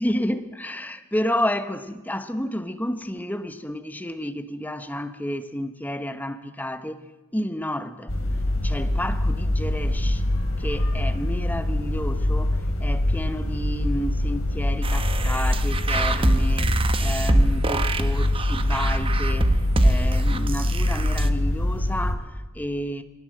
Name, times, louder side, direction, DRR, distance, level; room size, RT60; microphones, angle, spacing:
voice 1, 0.0-7.0 7.3-8.1 8.6-10.2 10.6-23.0, equal, 10° left, 1.0 m, -31 dB
sound 1, 8.1-22.1, left 1 dB, 80° left, 3.4 m, -24 dB
sound 2, 14.8-21.3, right 1 dB, 25° right, 1.0 m, -24 dB
20.5 x 17.5 x 7.7 m
head